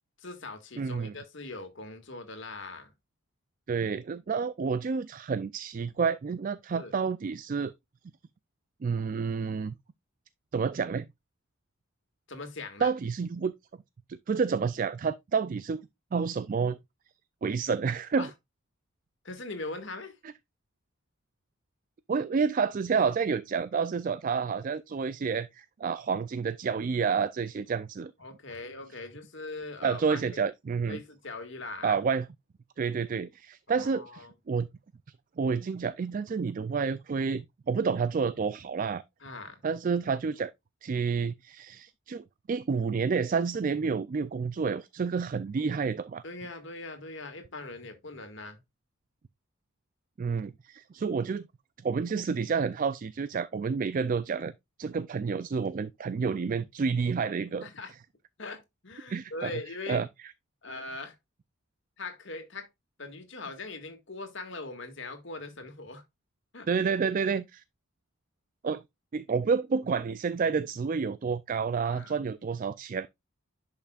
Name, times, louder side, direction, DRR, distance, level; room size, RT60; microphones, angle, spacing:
voice 1, 0.2-2.9 6.7-6.9 12.3-12.9 18.2-18.3 19.2-20.2 28.2-30.4 30.9-32.0 33.7-34.3 39.2-39.7 46.2-48.6 57.6-57.9 58.4-60.1 60.6-61.2 62.0-62.7 63.0-66.0 66.5-66.7 71.9-72.1, left 3 dB, 60° left, 2.0 m, -41 dB
voice 2, 0.8-1.1 3.7-7.7 8.8-9.7 10.5-11.0 12.8-13.5 14.1-15.8 16.1-16.8 17.4-18.3 22.1-28.1 29.8-31.0 31.8-32.3 32.8-34.7 35.4-39.0 39.6-40.5 40.8-46.2 50.2-51.4 51.8-54.5 54.8-57.6 59.1-59.5 59.9-60.1 66.7-67.6 68.6-68.8 69.1-73.1, right 5 dB, 40° right, 0.3 m, -29 dB
10.5 x 5.7 x 2.4 m
head